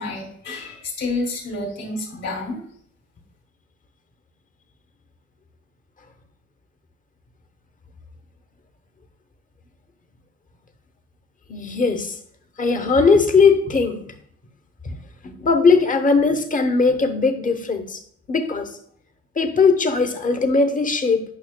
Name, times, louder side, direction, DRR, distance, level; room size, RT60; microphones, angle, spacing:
voice 1, 0.0-2.6, left 2 dB, 65° left, 0 dB, 2.6 m, -29 dB
voice 2, 11.5-12.2 12.6-14.0 14.8-15.0 15.2-18.0 18.3-18.8 19.4-21.2, left 4 dB, 25° left, 7 dB, 0.9 m, -19 dB
9.2 x 5.5 x 2.2 m, 0.65 s
cardioid pair, 90°, 30 cm